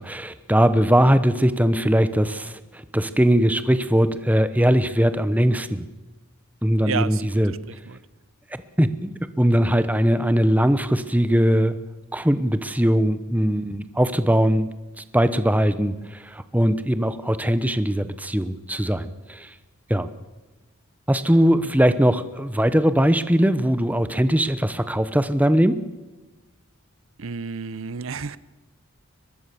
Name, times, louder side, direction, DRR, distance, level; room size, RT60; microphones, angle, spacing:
voice 1, 0.0-5.9 6.6-7.5 8.8-11.8 12.1-14.7 15.0-19.5 19.9-20.1 21.1-25.8, equal, 5° right, 12 dB, 0.9 m, -20 dB
voice 2, 6.9-8.0 21.6-21.7 27.2-28.4, right 5 dB, 70° right, 17 dB, 0.8 m, -31 dB
23.5 x 20.5 x 7.0 m, 1.1 s
head